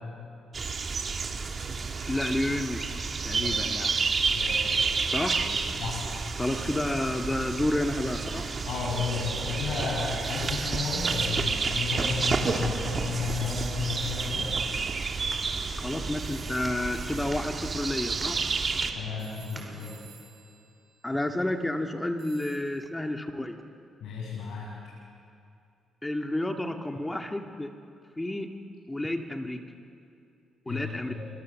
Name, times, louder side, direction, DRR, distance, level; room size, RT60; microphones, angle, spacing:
sound 1, 0.5-18.9, right 4 dB, 40° right, 2.6 m, -30 dB
voice 1, 2.1-3.9 5.1-5.5 6.4-8.5 15.8-18.4 21.0-23.6 26.0-27.7 28.2-28.5 28.9-29.6 30.7-31.1, left 1 dB, 15° left, 4 dB, 1.9 m, -30 dB
voice 2, 3.3-3.6 4.3-4.9 5.8-6.1 8.7-14.5 18.9-19.9 24.0-24.7 30.7-31.2, left 5 dB, 75° left, -5 dB, 7.3 m, -33 dB
sound 2, 10.2-12.7 13.2-21.7 22.2-22.6, right 8 dB, 70° right, 3.8 m, -55 dB
sound 3, 15.3-19.9, right 1 dB, 10° right, 5.4 m, -48 dB
29.5 x 24.0 x 7.5 m, 2.5 s
cardioid pair, 90°, 0 cm